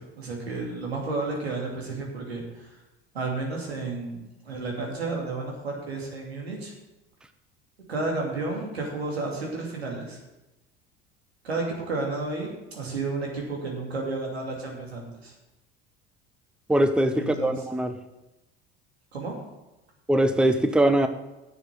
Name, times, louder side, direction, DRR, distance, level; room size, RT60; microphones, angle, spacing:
voice 1, 0.0-2.8 3.1-4.2 4.4-6.7 7.9-10.2 11.4-15.3 17.1-17.5 19.1-19.4, right 3 dB, 90° right, -1 dB, 2.7 m, -32 dB
voice 2, 16.7-18.0 20.1-21.1, right 1 dB, 5° right, 9 dB, 0.9 m, -22 dB
10.0 x 6.8 x 7.5 m, 1.0 s
hypercardioid pair, 70°, 31 cm